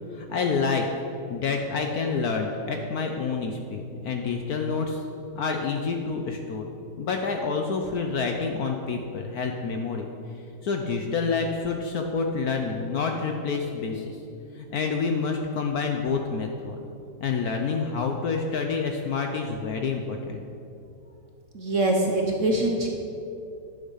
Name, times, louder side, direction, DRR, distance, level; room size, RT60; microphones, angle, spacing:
voice 1, 0.1-0.8 1.3-5.0 5.4-6.6 7.0-10.1 10.6-14.2 14.5-16.8 17.2-20.4, left 4 dB, 65° left, 3 dB, 1.0 m, -28 dB
voice 2, 21.5-22.9, right 1 dB, 50° right, 1 dB, 1.0 m, -23 dB
11.5 x 7.2 x 5.6 m, 2.7 s
omnidirectional pair, 2.1 m